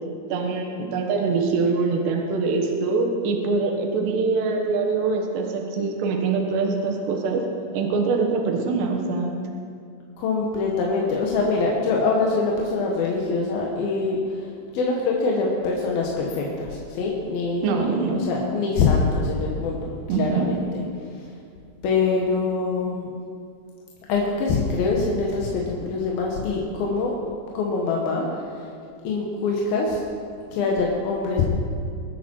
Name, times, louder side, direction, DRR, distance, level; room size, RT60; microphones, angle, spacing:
voice 1, 0.3-7.4 7.7-9.3 17.6-18.3 20.1-20.6, right 4 dB, 75° right, 2 dB, 3.3 m, -24 dB
voice 2, 10.2-14.5 14.7-20.8 21.8-23.2 24.1-27.3 27.5-28.3 29.0-30.0 30.5-31.4, left 4 dB, 65° left, -2 dB, 2.7 m, -24 dB
22.5 x 9.2 x 4.5 m, 2.3 s
omnidirectional pair, 5.2 m